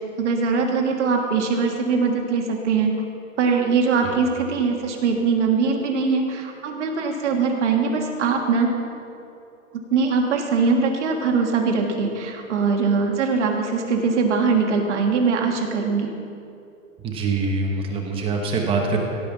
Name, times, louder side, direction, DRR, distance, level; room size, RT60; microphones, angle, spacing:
voice 1, 0.2-2.9 3.4-8.7 9.7-16.1, right 5 dB, 60° right, 2 dB, 1.7 m, -22 dB
voice 2, 17.0-19.0, right 3 dB, 15° right, 1 dB, 1.0 m, -24 dB
16.0 x 5.4 x 7.1 m, 2.7 s
hypercardioid pair, 155°, 40 cm